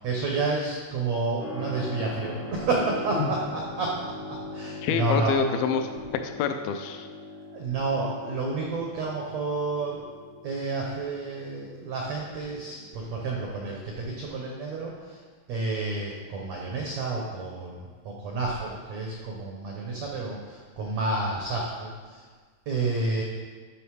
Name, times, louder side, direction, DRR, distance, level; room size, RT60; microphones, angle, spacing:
voice 1, 0.0-4.0 4.3-5.4 7.5-10.1 10.4-15.2 15.5-22.2 22.7-23.2, right 3 dB, 90° right, -1 dB, 1.5 m, -30 dB
Keyboard (musical), 1.4-13.8, left 2 dB, 65° left, 1.1 m, -42 dB
voice 2, 4.8-5.9 6.1-7.1, left 6 dB, 80° left, 7 dB, 2.2 m, -27 dB
10.5 x 5.8 x 4.8 m, 1.5 s
omnidirectional pair, 4.7 m